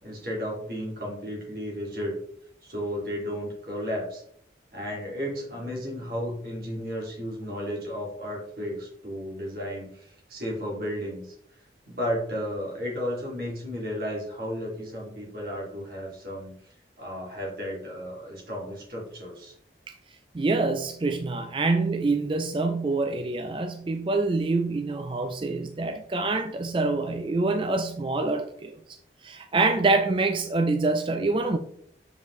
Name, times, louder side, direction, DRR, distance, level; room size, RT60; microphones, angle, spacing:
voice 1, 0.0-2.2 2.6-4.2 4.7-11.3 11.9-16.5 17.0-19.5, equal, 55° right, -4 dB, 2.4 m, -33 dB
voice 2, 20.3-28.7 29.2-31.6, right 3 dB, 30° right, 7 dB, 0.4 m, -26 dB
7.1 x 5.1 x 3.1 m, 0.67 s
head